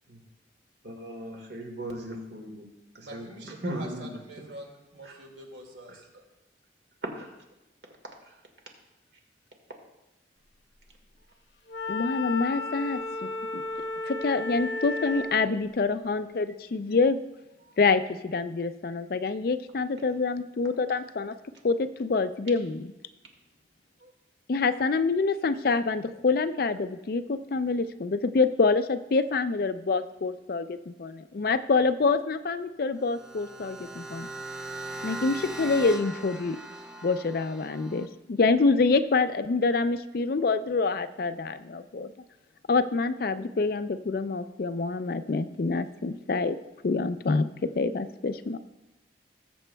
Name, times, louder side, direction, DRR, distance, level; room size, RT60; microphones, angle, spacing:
voice 1, 0.8-2.7 2.9-4.5 5.0-5.2 5.9-6.0 7.1-7.3 8.2-8.4 17.6-17.7 24.0-24.1, right 1 dB, 70° right, 1 dB, 1.8 m, -39 dB
voice 2, 3.0-6.2, right 1 dB, 85° right, 0 dB, 2.2 m, -44 dB
Wind instrument woodwind instrument, 11.7-15.4, left 3 dB, 75° left, 0.9 m, -33 dB
voice 3, 11.9-13.6 14.1-17.2 17.8-21.3 21.6-22.8 24.5-34.3 35.0-36.6 37.0-42.1 42.7-46.6 46.8-48.6, left 4 dB, 55° left, 11 dB, 0.4 m, -26 dB
sound 1, 33.0-38.1, right 2 dB, 5° right, 0.5 m, -39 dB
19.5 x 7.7 x 2.3 m, 0.98 s
head